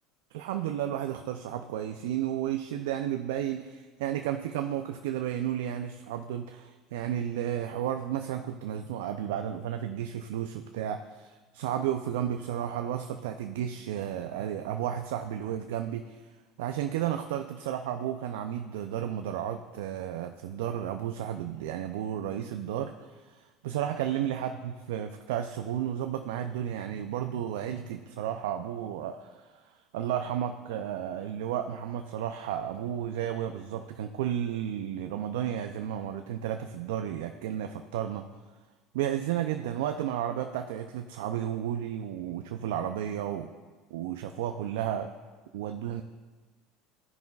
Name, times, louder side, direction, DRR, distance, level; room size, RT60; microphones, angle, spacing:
voice 1, 0.3-16.2 16.6-38.3 38.9-43.5 43.9-45.1 45.5-46.0, right 10 dB, 85° right, 6 dB, 0.4 m, -33 dB
14.0 x 5.4 x 2.3 m, 1.4 s
supercardioid pair, 100°, 0 cm